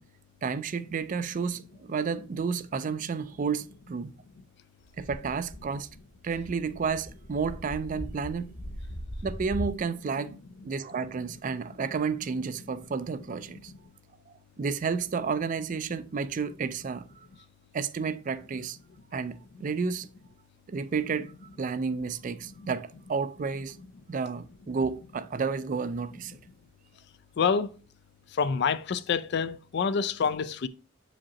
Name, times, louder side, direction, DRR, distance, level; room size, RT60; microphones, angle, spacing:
voice 1, 0.4-4.1 5.0-5.9 6.2-8.5 9.2-10.4 10.6-13.7 14.3-17.3 17.7-18.8 19.1-20.1 20.7-21.3 21.6-23.8 24.1-26.4, right 5 dB, 40° right, 0.4 m, -31 dB
sound 1, 4.9-9.8, equal, 80° left, 2.2 m, -40 dB
voice 2, 27.4-27.7 28.3-30.7, left 6 dB, 55° left, 0.4 m, -27 dB
7.2 x 5.0 x 2.9 m
head